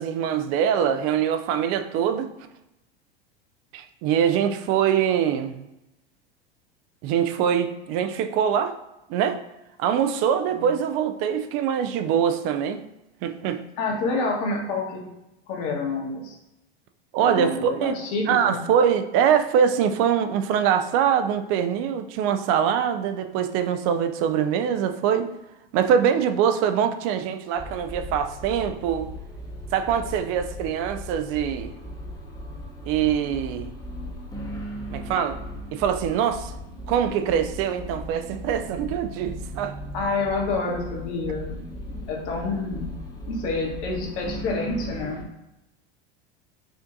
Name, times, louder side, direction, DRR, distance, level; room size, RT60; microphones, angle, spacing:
voice 1, 0.0-2.3 3.7-5.7 7.0-8.8 9.1-9.4 9.8-12.8 13.2-13.6 17.1-18.0 18.3-25.3 25.7-29.1 29.7-31.7 32.9-33.7 34.9-35.4 35.7-36.5 36.9-39.8 41.9-42.0, right 8 dB, 45° right, 8 dB, 0.5 m, -23 dB
voice 2, 13.8-15.0 15.5-16.4 17.2-18.6 39.9-41.6 42.1-42.9 43.3-45.3, left 3 dB, 55° left, -1 dB, 1.2 m, -28 dB
sound 1, 27.6-45.2, equal, 15° left, 0.8 m, -37 dB
5.0 x 2.5 x 2.5 m, 0.93 s
hypercardioid pair, 85°, 30 cm